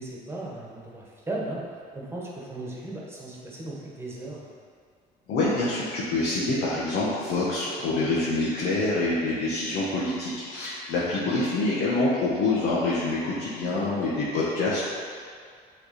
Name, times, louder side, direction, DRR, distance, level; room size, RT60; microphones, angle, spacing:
voice 1, 0.0-1.6 1.9-4.5 13.7-13.9, right 2 dB, 15° right, -4 dB, 1.4 m, -36 dB
voice 2, 5.3-14.8, left 2 dB, 75° left, -7 dB, 1.2 m, -26 dB
7.7 x 3.4 x 4.2 m, 2.1 s
cardioid pair, 110°, 17 cm